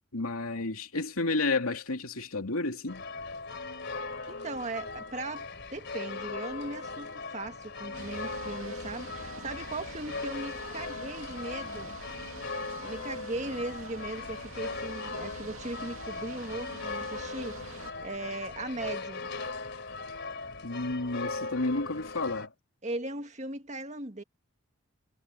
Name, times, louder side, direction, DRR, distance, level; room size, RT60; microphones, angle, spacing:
voice 1, 0.1-3.0 20.6-22.5, left 3 dB, 85° left, 2.8 m, -31 dB
sound 1, 2.9-22.5, left 3 dB, 55° left, 3.7 m, -39 dB
voice 2, 4.3-12.0 12.8-19.3 22.8-24.2, right 2 dB, 35° right, 1.9 m, -38 dB
sound 2, 7.9-17.9, right 4 dB, 75° right, 2.3 m, -46 dB
head